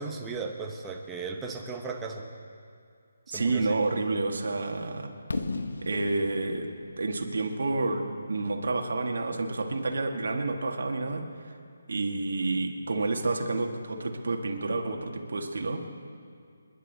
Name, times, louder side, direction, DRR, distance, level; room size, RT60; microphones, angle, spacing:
voice 1, 0.0-2.2 3.3-3.8, right 4 dB, 10° right, 1 dB, 1.0 m, -36 dB
voice 2, 3.3-5.1 5.8-6.7 7.0-11.3 11.9-15.8, right 3 dB, 70° right, 3 dB, 1.8 m, -29 dB
Fireworks, 5.3-9.2, left 3 dB, 90° left, 1.1 m, -37 dB
27.5 x 11.0 x 4.1 m, 2.2 s
hypercardioid pair, 165°, 0 cm